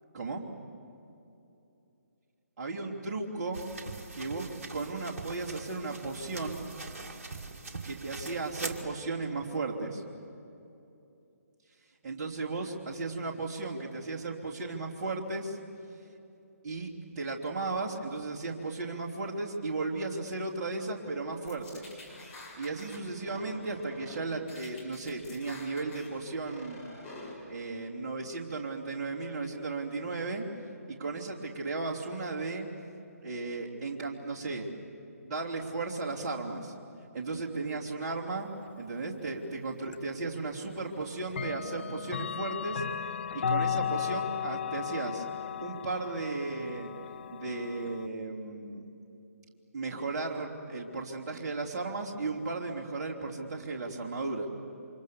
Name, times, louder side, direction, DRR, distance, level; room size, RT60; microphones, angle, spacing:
voice 1, 0.1-0.4 2.6-3.6 4.1-6.7 7.8-10.0 12.0-15.6 16.6-16.9 17.2-21.8 22.5-26.8 27.4-30.5 30.9-32.7 33.2-34.7 35.2-36.7 37.1-38.5 38.7-42.8 43.3-45.2 45.6-46.9 47.3-48.8 49.7-54.5, right 3 dB, 25° right, -4 dB, 3.1 m, -35 dB
sound 1, 3.5-8.9, right 3 dB, 50° right, 2.0 m, -42 dB
sound 2, 21.5-23.0 23.3-24.2 24.5-26.1 26.4-27.3, left 2 dB, 15° left, 5.1 m, -47 dB
Clock, 39.9-40.0 41.3-48.1, left 8 dB, 40° left, 0.6 m, -35 dB
28.5 x 25.5 x 7.2 m, 2.8 s
figure-of-eight pair, 140°, 9 cm